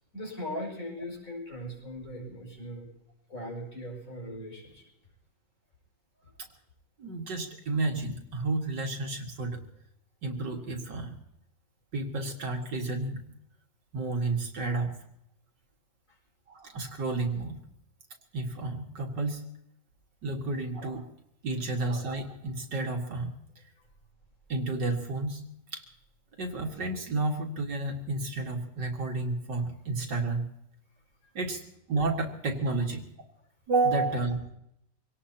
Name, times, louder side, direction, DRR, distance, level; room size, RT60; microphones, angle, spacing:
voice 1, 0.1-2.9 3.3-4.9 6.2-6.3 16.1-16.2, left 1 dB, 40° left, 0 dB, 6.8 m, -39 dB
voice 2, 7.0-9.6 10.2-11.2 11.9-13.2 13.9-15.0 16.5-17.6 18.3-19.4 20.2-21.1 21.4-23.3 24.5-25.4 25.7-25.9 26.4-30.4 31.3-33.1 33.7-34.5, right 3 dB, 65° right, 2 dB, 2.5 m, -31 dB
25.0 x 18.5 x 2.9 m, 0.79 s
omnidirectional pair, 2.1 m